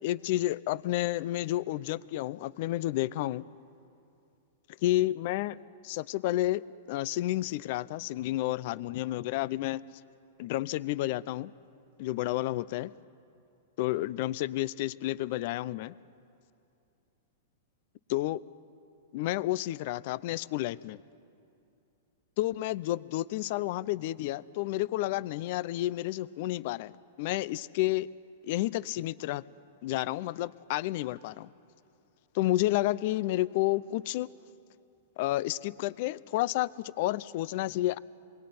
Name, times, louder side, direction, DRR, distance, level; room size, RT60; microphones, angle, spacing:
voice 1, 0.0-3.4 4.8-5.6 5.8-6.6 6.9-9.8 10.4-11.5 12.0-12.9 13.8-16.0 18.1-18.4 19.1-21.0 22.4-26.9 27.2-28.1 28.4-29.4 29.8-31.5 32.3-34.3 35.2-38.0, left 16 dB, 55° left, 19 dB, 0.7 m, -30 dB
27.5 x 22.5 x 9.6 m, 2.5 s
hypercardioid pair, 125°, 0 cm